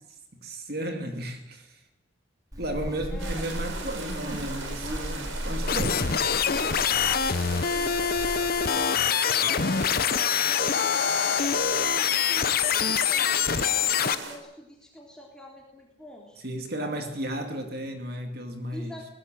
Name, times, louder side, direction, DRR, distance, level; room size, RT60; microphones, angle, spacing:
voice 1, 0.3-1.8 2.6-6.1 16.4-18.9, right 1 dB, 50° right, 5 dB, 2.3 m, -34 dB
Buzz, 2.5-8.7, equal, 20° right, 2.4 m, -36 dB
voice 2, 3.1-3.4 7.0-10.9 11.2-16.4 16.8-17.1 18.7-19.1, left 1 dB, 5° left, -2 dB, 3.4 m, -46 dB
sound 1, 3.2-14.4, right 3 dB, 85° right, 4.8 m, -38 dB
sound 2, 5.7-14.1, left 7 dB, 50° left, 0.8 m, -25 dB
21.5 x 18.5 x 7.6 m, 0.88 s
head